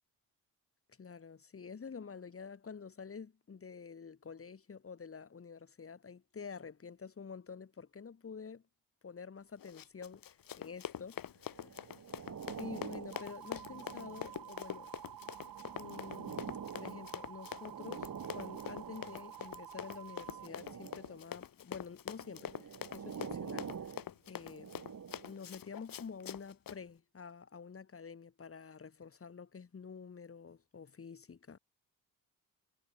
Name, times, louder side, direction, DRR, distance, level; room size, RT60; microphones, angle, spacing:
voice 1, 1.0-8.6 9.0-11.2 11.5-11.8 12.6-14.9 15.7-18.1 18.3-23.9 24.3-24.8 25.2-31.6, left 5 dB, 40° left, 2.1 m, -49 dB
Run, 9.6-26.8, left 10 dB, 65° left, 2.4 m, -45 dB
sound 1, 11.5-14.6 15.2-19.4 20.2-21.3 22.1-25.5 26.2-26.3, right 7 dB, 50° right, 4.4 m, -47 dB
sound 2, 13.1-20.5, right 13 dB, 80° right, 3.2 m, -50 dB
cardioid pair, 70°, 37 cm